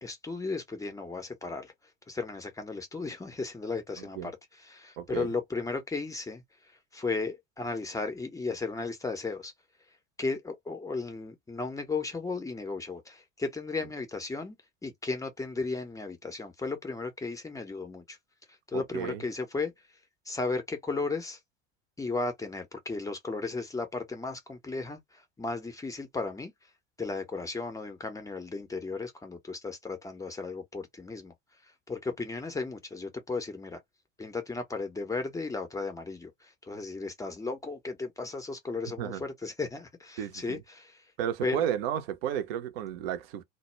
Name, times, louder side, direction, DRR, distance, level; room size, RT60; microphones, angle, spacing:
voice 1, 0.0-1.7 2.1-6.4 6.9-9.5 10.2-14.6 14.8-18.2 18.7-19.7 20.3-21.4 22.0-26.5 27.0-31.3 31.9-33.8 34.2-41.0 41.4-41.7, left 3 dB, 10° left, 0.5 m, -35 dB
voice 2, 5.0-5.3 18.7-19.2 39.0-39.2 40.2-40.6 41.2-43.4, right 10 dB, 50° right, 0.6 m, -32 dB
2.1 x 2.1 x 3.0 m
figure-of-eight pair, 75°, 38 cm